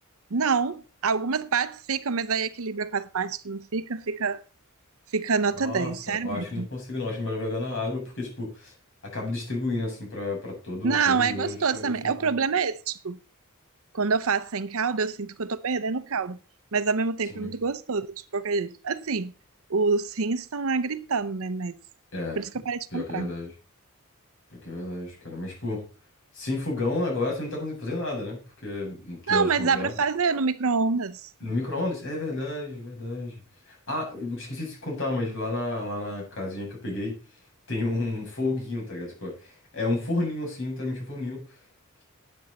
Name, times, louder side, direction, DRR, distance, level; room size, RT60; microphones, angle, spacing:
voice 1, 0.3-4.4 5.1-6.7 10.8-13.2 13.9-16.4 16.7-19.3 19.7-21.8 22.4-23.3 29.3-31.3, right 5 dB, 65° right, 0.7 m, -27 dB
voice 2, 5.6-8.7 9.1-12.3 17.3-17.5 22.1-22.4 22.9-23.5 24.6-25.8 26.3-29.9 31.4-33.3 33.7-37.1 37.7-41.4, left 2 dB, 60° left, 7.9 m, -31 dB
12.5 x 9.2 x 4.2 m
head